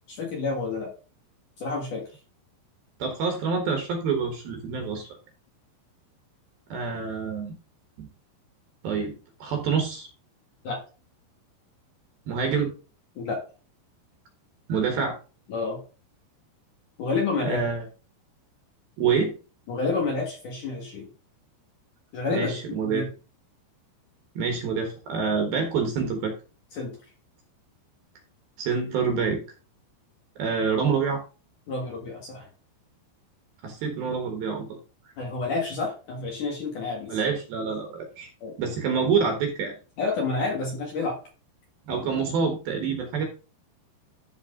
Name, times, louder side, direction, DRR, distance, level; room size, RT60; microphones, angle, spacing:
voice 1, 0.1-0.9 1.6-2.0 10.6-10.8 13.2-13.4 15.5-15.8 17.0-17.6 19.7-21.1 22.1-23.1 26.7-26.9 31.7-32.5 35.2-37.2 38.4-38.5 40.0-41.2, left 3 dB, 55° left, -1 dB, 2.5 m, -29 dB
voice 2, 3.0-5.2 6.7-7.5 8.0-8.1 8.8-10.1 12.3-12.7 14.7-15.2 17.5-17.8 19.0-19.3 22.3-23.0 24.4-26.3 28.6-29.4 30.4-31.2 33.6-34.8 37.1-38.3 38.6-39.8 41.9-43.2, right 5 dB, 65° right, 3 dB, 2.7 m, -27 dB
13.0 x 4.7 x 3.7 m, 0.34 s
omnidirectional pair, 5.6 m